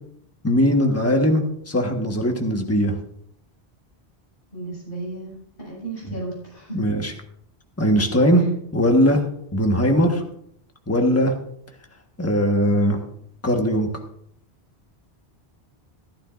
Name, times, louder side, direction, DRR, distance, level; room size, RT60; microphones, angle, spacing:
voice 1, 0.4-2.9 6.7-7.1 7.8-8.4 8.7-9.2 9.5-10.2 10.9-11.3 12.2-13.0 13.4-13.9, equal, 15° left, 3 dB, 1.4 m, -19 dB
voice 2, 4.5-5.3 5.6-6.7, right 2 dB, 55° left, -5 dB, 6.5 m, -34 dB
15.0 x 13.5 x 2.5 m, 0.70 s
omnidirectional pair, 1.1 m